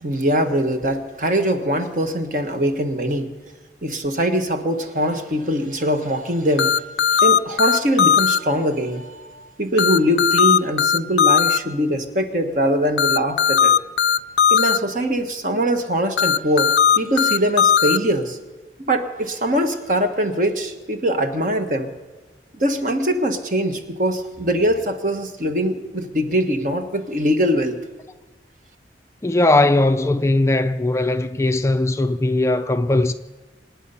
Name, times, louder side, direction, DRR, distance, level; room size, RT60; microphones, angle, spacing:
voice 1, 0.0-3.3 3.8-6.8 7.1-13.7 14.5-18.4 18.9-21.9 22.6-27.7, equal, 45° right, 1.4 m, -22 dB
sound 1, 6.6-8.4 9.8-11.6 13.0-14.8 16.2-18.0, left 7 dB, 80° left, 0.5 m, -17 dB
voice 2, 29.2-33.1, left 2 dB, 15° left, 0.4 m, -19 dB
25.5 x 9.4 x 5.7 m
head